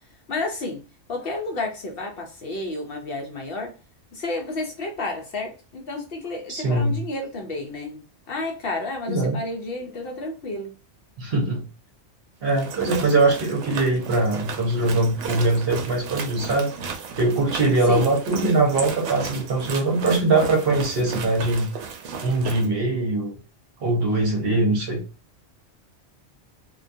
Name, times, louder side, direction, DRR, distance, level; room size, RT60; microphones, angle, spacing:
voice 1, 0.3-0.8 1.1-3.7 4.1-8.0 8.3-10.7 17.9-18.1, left 2 dB, 60° left, 0.7 m, -31 dB
voice 2, 6.5-7.0 9.1-9.4 11.2-11.7 12.4-16.7 17.2-21.7 22.2-23.3 23.8-25.0, right 2 dB, 55° right, 0.9 m, -22 dB
sound 1, 12.5-22.7, right 5 dB, 80° right, 0.9 m, -34 dB
2.2 x 2.2 x 2.5 m
omnidirectional pair, 1.3 m